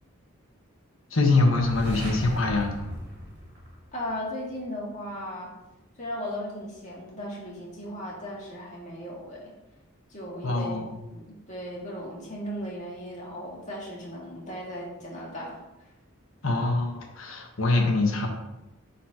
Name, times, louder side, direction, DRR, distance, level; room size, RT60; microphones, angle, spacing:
voice 1, 1.1-2.7 10.4-11.0 16.4-18.3, left 3 dB, 75° left, 1 dB, 1.3 m, -24 dB
sound 1, 1.4-4.3, equal, 45° right, 2.3 m, -37 dB
voice 2, 3.9-5.5 6.0-9.5 10.1-10.8 11.1-15.6, equal, 35° left, -5 dB, 2.0 m, -36 dB
10.0 x 4.1 x 2.9 m, 0.96 s
head